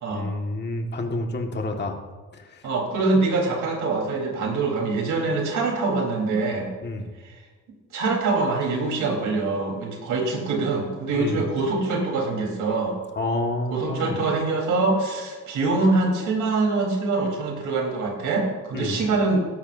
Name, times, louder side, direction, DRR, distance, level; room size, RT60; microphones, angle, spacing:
voice 1, 0.1-2.0 2.3-2.7 6.8-7.1 11.1-11.4 13.1-14.2 18.7-19.0, left 2 dB, 35° left, 2 dB, 1.8 m, -29 dB
voice 2, 2.6-6.7 7.9-13.0 13.7-19.4, right 3 dB, 80° right, 0 dB, 4.0 m, -24 dB
16.0 x 13.0 x 2.7 m, 1.4 s
cardioid pair, 90°, 30 cm